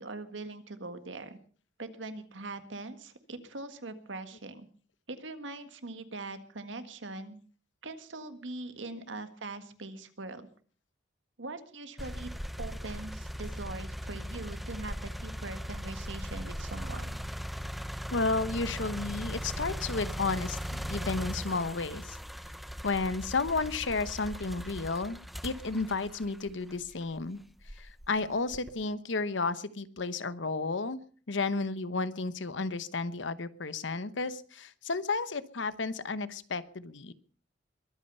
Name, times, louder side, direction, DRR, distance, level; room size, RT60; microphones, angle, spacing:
voice 1, 0.0-1.4 1.8-4.7 5.1-7.4 7.8-10.5 11.4-12.3 12.6-17.2, right 2 dB, 85° right, 9 dB, 1.7 m, -42 dB
sound 1, 12.0-27.0 27.6-28.8, equal, ahead, 0.7 m, -39 dB
voice 2, 18.1-22.2 22.8-27.4 27.8-31.0 31.3-37.1, left 3 dB, 80° left, 15 dB, 1.0 m, -32 dB
22.5 x 8.8 x 5.5 m, 0.43 s
head